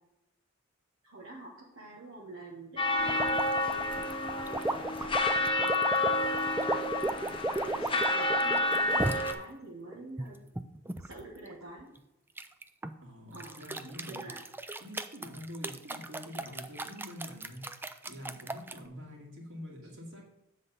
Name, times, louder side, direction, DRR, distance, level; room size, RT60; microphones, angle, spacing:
voice 1, 1.0-5.7 6.6-10.4 11.0-11.9 13.3-13.5 14.1-14.4, right 2 dB, 80° right, -4 dB, 1.4 m, -47 dB
sound 1, 2.8-9.3, left 2 dB, 25° left, 0.8 m, -29 dB
sound 2, 3.1-9.3 9.9-11.2 12.4-12.9 13.3-18.8, right 2 dB, 10° right, 0.4 m, -35 dB
voice 2, 13.0-14.3 14.8-17.6 18.1-20.2, equal, 65° right, -2 dB, 2.5 m, -46 dB
7.7 x 4.1 x 6.8 m, 0.89 s
head